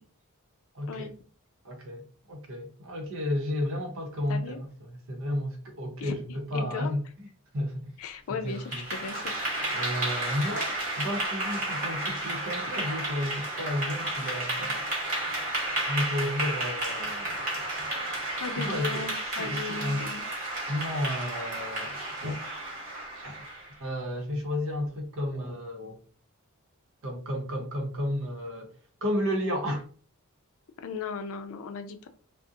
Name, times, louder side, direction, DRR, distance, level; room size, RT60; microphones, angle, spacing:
voice 1, 0.7-1.1 1.6-7.0 7.5-7.9 8.3-8.8 9.7-14.8 15.9-17.6 18.5-19.1 19.4-20.1 20.7-22.4 23.2-23.5 23.8-26.0 27.0-28.7 29.0-29.9, left 1 dB, 65° right, 0.7 m, -32 dB
voice 2, 4.3-4.6 6.0-6.2 6.5-6.9 8.0-9.7 18.4-20.3 30.8-32.1, left 5 dB, 65° left, 0.4 m, -37 dB
Clapping / Applause, 8.5-23.8, right 1 dB, 35° right, 1.0 m, -32 dB
2.6 x 2.0 x 2.4 m
head